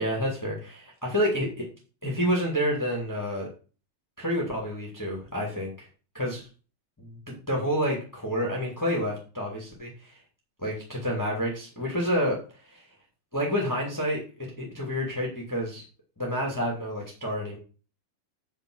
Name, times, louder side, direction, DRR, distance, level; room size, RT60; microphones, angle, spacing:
voice 1, 0.0-1.7 2.0-3.5 4.2-5.9 6.1-6.4 7.5-10.2 10.6-12.4 12.6-12.8 13.3-14.2 14.6-15.8 16.2-17.6, equal, 15° left, -1 dB, 0.7 m, -29 dB
10.0 x 3.7 x 6.3 m, 0.36 s
omnidirectional pair, 4.9 m